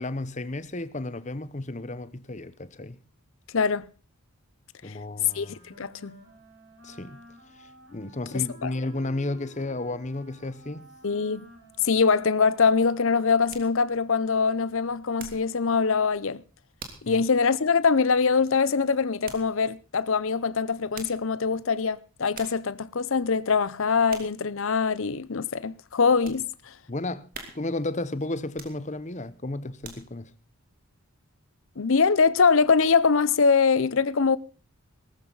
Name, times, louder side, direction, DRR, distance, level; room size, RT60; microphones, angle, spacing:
voice 1, 0.0-3.0 4.8-5.6 6.8-7.2 7.5-10.9 17.1-17.2 26.9-27.3 27.5-30.3, left 2 dB, 30° left, 0.9 m, -33 dB
voice 2, 3.5-3.9 4.9-5.0 5.3-6.2 8.6-8.7 11.0-11.5 11.8-16.4 17.0-26.7 31.8-34.4, left 5 dB, 60° left, 0.7 m, -23 dB
Wind instrument woodwind instrument, 5.1-13.7, right 1 dB, 55° right, 6.9 m, -52 dB
sound 1, 13.4-15.6 15.9-16.3 16.8-17.2 17.6-17.7 19.2-19.6 20.7-21.3 21.9-22.0 22.3-22.7 23.2-23.5 24.1-24.5 24.9-25.0 25.6-26.5 26.9-27.0 27.3-27.9 28.5-29.1 29.6-30.3 30.8-30.9, right 5 dB, 40° right, 3.0 m, -45 dB
18.0 x 14.5 x 4.0 m
head